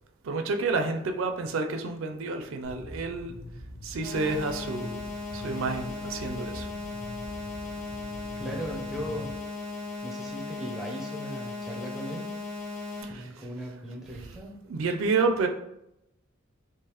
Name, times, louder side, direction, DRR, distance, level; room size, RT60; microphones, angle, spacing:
voice 1, 0.2-3.4 3.8-5.0 5.3-6.7 13.0-13.4 14.1-14.4 14.7-15.5, right 3 dB, 70° right, 5 dB, 0.4 m, -29 dB
sound 1, 2.6-9.3, left 1 dB, 80° left, 1.2 m, -43 dB
sound 2, 4.0-13.0, left 3 dB, 15° left, 1.2 m, -37 dB
sound 3, 5.2-10.5, left 1 dB, 60° left, 0.5 m, -54 dB
voice 2, 8.4-9.3 10.0-12.3 13.1-14.6, equal, ahead, 0 dB, 0.6 m, -38 dB
3.7 x 2.9 x 2.9 m, 0.83 s
head